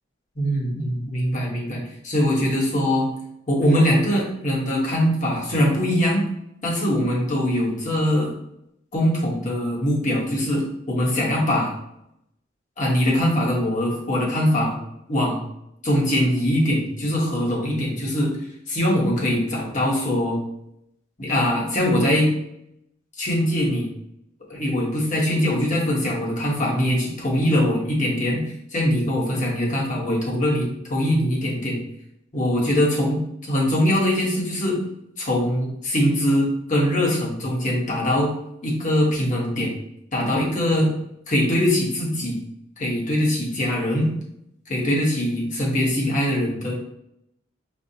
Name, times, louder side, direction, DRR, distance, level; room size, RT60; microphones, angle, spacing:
voice 1, 0.4-3.1 3.5-6.3 6.6-8.3 8.9-11.7 12.8-14.8 15.1-15.4 15.8-18.4 18.7-20.4 21.2-22.3 23.2-23.9 24.5-28.4 28.7-31.8 32.3-33.2 33.5-34.8 35.2-38.3 38.6-39.7 40.1-40.9 41.3-42.4 42.8-44.1 44.7-46.7, equal, 40° left, -3 dB, 1.0 m, -22 dB
5.2 x 2.1 x 2.7 m, 0.78 s
head